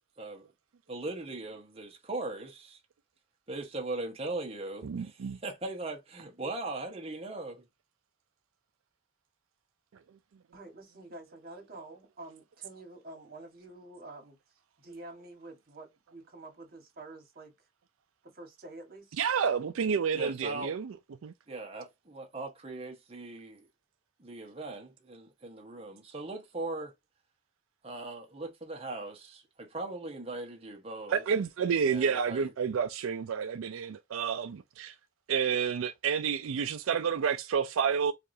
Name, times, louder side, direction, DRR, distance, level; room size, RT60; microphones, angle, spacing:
voice 1, 0.9-2.8 3.5-7.6 20.1-20.7 21.5-23.6 24.2-26.9 27.8-31.2 31.8-32.5, right 2 dB, 30° right, 0.9 m, -39 dB
voice 2, 4.8-5.4 19.2-21.0 21.2-21.3 31.1-34.9 35.3-38.1, right 6 dB, 85° right, 0.4 m, -30 dB
voice 3, 10.5-14.4 14.8-17.7 18.2-19.2, right 2 dB, 45° right, 1.6 m, -48 dB
4.7 x 2.5 x 2.7 m
head